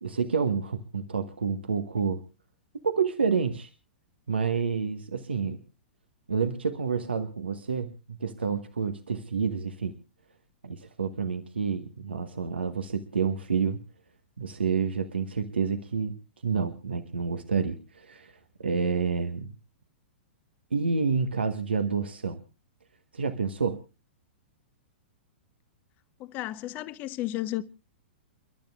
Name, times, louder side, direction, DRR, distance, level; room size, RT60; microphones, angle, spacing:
voice 1, 0.0-2.2 2.8-3.7 4.3-5.6 6.3-9.9 10.6-13.8 14.4-16.2 16.4-18.3 18.6-19.5 20.7-22.4 23.1-23.8, right 5 dB, 75° right, 1.2 m, -29 dB
voice 2, 26.2-27.6, left 15 dB, 30° left, 0.9 m, -33 dB
29.5 x 12.0 x 2.4 m
figure-of-eight pair, 105°, 6 cm